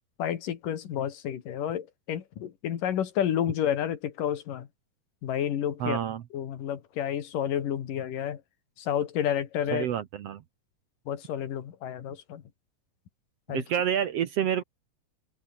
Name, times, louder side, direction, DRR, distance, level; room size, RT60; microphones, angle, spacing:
voice 1, 0.2-4.7 5.2-6.0 6.3-8.4 8.8-9.9 11.1-12.4 13.5-13.6, left 10 dB, 80° left, 3.6 m, -30 dB
voice 2, 5.8-6.2 9.7-10.4 13.5-14.6, right 9 dB, 65° right, 1.8 m, -28 dB
omnidirectional pair, 3.8 m